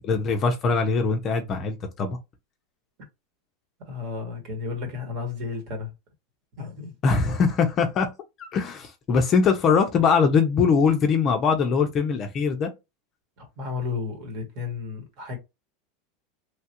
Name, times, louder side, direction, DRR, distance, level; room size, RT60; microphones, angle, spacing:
voice 1, 0.0-2.2 7.0-8.1 8.4-12.7, left 5 dB, 25° left, 0.5 m, -22 dB
voice 2, 3.8-5.9 6.5-6.9 13.4-15.4, left 5 dB, 45° right, 1.2 m, -33 dB
3.2 x 2.3 x 2.8 m
supercardioid pair, 160°, 0 cm